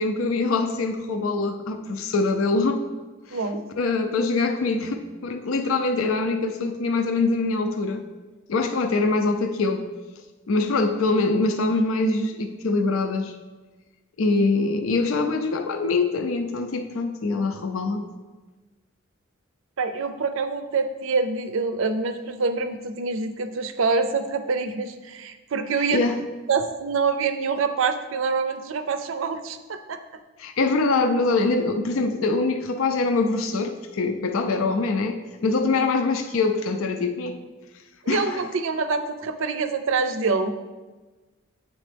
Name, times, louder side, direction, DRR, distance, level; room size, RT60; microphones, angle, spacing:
voice 1, 0.0-2.8 3.3-3.4 3.8-8.0 8.5-9.8 10.5-13.3 14.2-18.0 25.9-26.2 30.4-37.4 38.1-38.4, left 3 dB, 80° left, 6 dB, 0.4 m, -24 dB
voice 2, 3.3-3.6 19.8-26.0 26.5-30.0 38.0-40.5, right 4 dB, 75° right, 9 dB, 0.5 m, -26 dB
9.1 x 4.1 x 3.4 m, 1.3 s
head